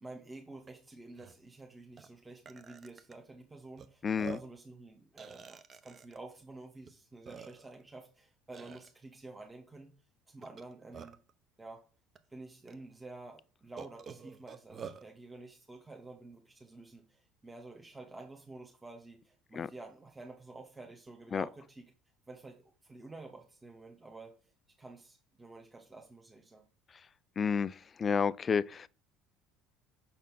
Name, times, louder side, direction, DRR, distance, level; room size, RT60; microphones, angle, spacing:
voice 1, 0.0-9.9 10.3-11.2 11.6-11.8 12.3-21.9 22.3-24.5 24.8-26.6, right 2 dB, 15° right, 1.1 m, -50 dB
Burping eructation, 0.7-0.8 1.1-1.3 2.0-2.1 2.5-3.1 3.8-3.9 4.2-4.6 5.2-6.2 6.9-7.0 7.3-7.8 8.5-8.9 10.4-11.3 12.2-12.3 12.7-12.8 13.8-15.0, right 6 dB, 40° right, 0.8 m, -47 dB
voice 2, 4.0-4.4 19.5-19.7 21.3-21.4 27.4-28.9, left 6 dB, 35° left, 0.3 m, -30 dB
6.0 x 4.3 x 5.4 m
supercardioid pair, 85°, 0 cm